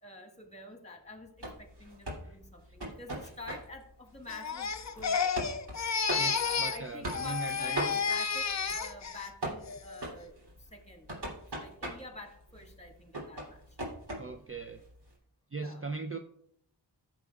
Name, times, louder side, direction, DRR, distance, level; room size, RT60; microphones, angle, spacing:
voice 1, 0.0-4.7 4.9-5.3 6.4-8.4 8.7-10.3 10.7-11.1 11.5-13.6 15.5-15.8, left 2 dB, 15° left, 3 dB, 1.6 m, -48 dB
sound 1, 1.4-15.1, right 1 dB, 65° right, 3.1 m, -42 dB
Crying sobbing, 4.3-6.8 7.1-9.3 9.7-10.1, left 6 dB, 40° left, 0.5 m, -31 dB
voice 2, 6.2-7.9 14.1-14.8 15.5-16.2, right 3 dB, 30° right, 6 dB, 0.5 m, -39 dB
15.0 x 7.0 x 2.4 m, 0.72 s
wide cardioid pair, 70°, 42 cm